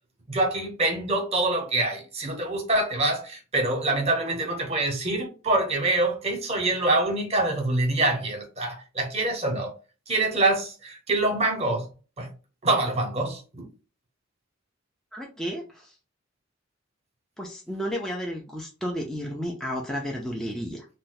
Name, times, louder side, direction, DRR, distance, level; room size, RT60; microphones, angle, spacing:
voice 1, 0.3-9.7 10.1-11.9 12.2-12.3 12.6-13.7, right 2 dB, 30° right, 0.9 m, -25 dB
voice 2, 15.1-16.0 17.4-20.9, equal, 5° left, 0.4 m, -32 dB
2.6 x 2.1 x 3.8 m
head